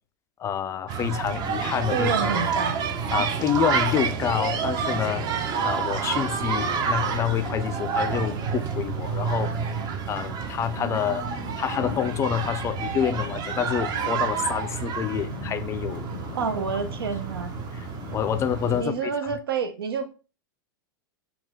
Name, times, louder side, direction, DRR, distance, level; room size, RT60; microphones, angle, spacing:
voice 1, 0.4-2.1 3.1-5.3 5.6-9.8 10.1-11.2 11.6-16.1 17.7-19.1, left 9 dB, 25° left, 0.3 m, -28 dB
sound 1, 0.9-18.8, right 6 dB, 35° right, 0.6 m, -29 dB
sound 2, 1.4-19.0, left 7 dB, 75° left, 0.6 m, -41 dB
voice 2, 1.9-2.8 10.8-11.6 16.3-17.5 18.7-20.1, right 6 dB, 90° right, 0.7 m, -29 dB
4.1 x 2.3 x 3.5 m
hypercardioid pair, 115°, 12 cm